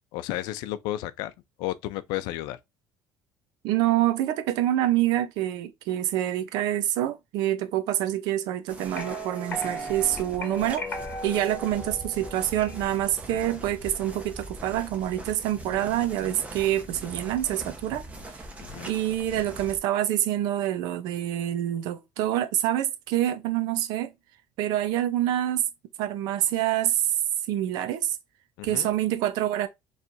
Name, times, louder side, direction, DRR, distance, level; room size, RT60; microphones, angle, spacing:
voice 1, 0.1-1.3 1.6-2.6 18.6-18.9 28.6-28.9, left 15 dB, 85° left, 0.5 m, -32 dB
voice 2, 3.6-10.8 11.2-18.0 18.9-24.1 24.6-25.6 26.0-27.1 27.5-28.2 28.6-29.7, right 12 dB, 80° right, 0.7 m, -26 dB
sound 1, 8.7-19.8, right 1 dB, 20° right, 0.9 m, -42 dB
sound 2, 8.9-12.9, equal, 25° left, 2.4 m, -37 dB
4.4 x 3.3 x 2.6 m
cardioid pair, 135°, 7 cm